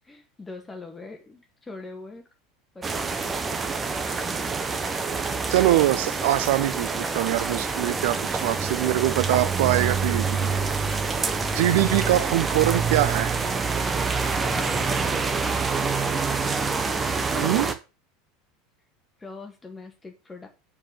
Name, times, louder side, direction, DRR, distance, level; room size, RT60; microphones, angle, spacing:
voice 1, 0.0-2.2 2.7-3.6 11.5-12.3 14.9-16.3 19.2-20.5, left 3 dB, 15° left, 1.8 m, -43 dB
sound 1, 2.8-17.7, right 4 dB, 20° right, 1.1 m, -26 dB
voice 2, 5.5-10.5 11.5-13.4 17.3-17.7, right 15 dB, 60° right, 0.6 m, -23 dB
7.5 x 4.8 x 6.8 m
figure-of-eight pair, 75°, 0 cm